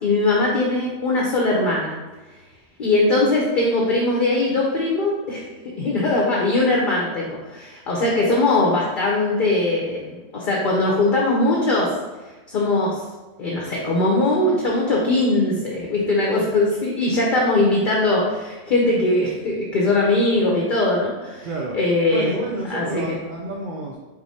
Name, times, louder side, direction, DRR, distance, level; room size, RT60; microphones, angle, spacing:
voice 1, 0.0-1.9 2.8-5.4 5.8-11.9 12.5-13.0 13.4-21.5 21.7-22.3 22.7-23.1, left 2 dB, 50° left, -3 dB, 0.8 m, -20 dB
voice 2, 21.4-21.8 22.1-24.0, right 2 dB, 55° right, -1 dB, 0.6 m, -30 dB
4.8 x 4.0 x 2.7 m, 1.2 s
omnidirectional pair, 1.2 m